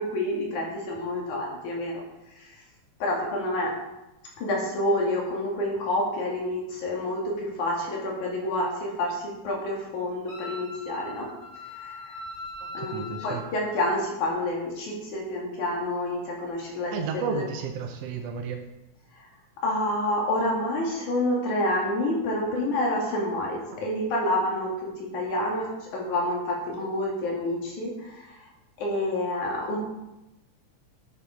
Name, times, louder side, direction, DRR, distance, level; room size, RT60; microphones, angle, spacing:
voice 1, 0.0-2.0 2.4-2.5 3.0-3.7 4.4-11.3 11.7-12.2 12.7-17.4 19.2-19.3 19.6-28.4 28.8-29.8, left 1 dB, 75° left, -1 dB, 3.6 m, -28 dB
Wind instrument woodwind instrument, 10.3-13.5, left 2 dB, 25° left, 2.2 m, -40 dB
voice 2, 12.8-13.4 16.9-18.6 23.7-23.9, right 5 dB, 70° right, 4 dB, 1.6 m, -32 dB
9.7 x 7.6 x 5.0 m, 0.95 s
omnidirectional pair, 3.5 m